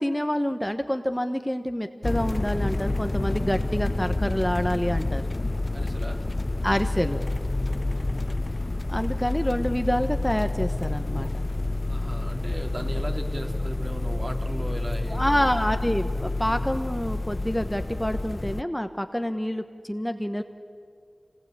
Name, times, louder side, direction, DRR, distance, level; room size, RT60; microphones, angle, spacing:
voice 1, 0.0-5.2 6.6-7.2 8.9-11.3 15.1-20.4, equal, 5° left, 8 dB, 1.0 m, -27 dB
sound 1, 2.0-18.6, left 2 dB, 40° left, 0.5 m, -28 dB
voice 2, 5.7-6.2 7.7-8.1 11.9-15.7, right 1 dB, 45° right, 4 dB, 2.2 m, -37 dB
26.5 x 19.0 x 8.7 m, 2.2 s
wide cardioid pair, 55°, 0 cm